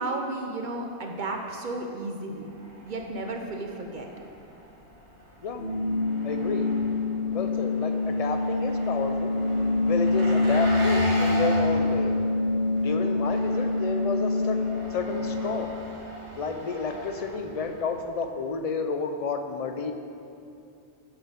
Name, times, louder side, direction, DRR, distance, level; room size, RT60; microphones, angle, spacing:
voice 1, 0.0-2.5 2.8-4.1, right 2 dB, 50° right, 2 dB, 0.8 m, -33 dB
Engine, 2.3-18.1, right 1 dB, 75° right, 1.7 m, -39 dB
sound 1, 5.6-15.6, left 2 dB, 90° left, 1.7 m, -25 dB
voice 2, 6.2-6.7 7.3-9.3 9.9-12.2 12.8-14.6 14.9-15.7 16.4-19.9, left 4 dB, 50° left, 6 dB, 0.5 m, -31 dB
8.8 x 6.3 x 5.1 m, 2.6 s
omnidirectional pair, 1.1 m